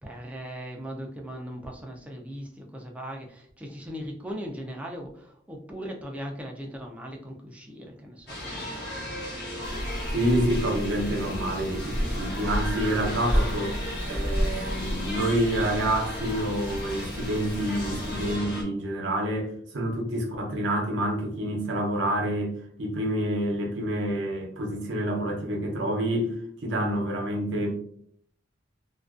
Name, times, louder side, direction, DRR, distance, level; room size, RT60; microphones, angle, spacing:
voice 1, 0.0-9.1, equal, 5° right, 1 dB, 0.4 m, -39 dB
sound 1, 8.3-18.6, equal, 60° left, 0.9 m, -35 dB
sound 2, 9.6-18.4, equal, 25° left, 0.7 m, -32 dB
voice 2, 10.1-22.5 22.8-26.3 26.6-27.7, right 1 dB, 70° right, 0 dB, 0.6 m, -28 dB
2.4 x 2.2 x 2.3 m, 0.63 s
head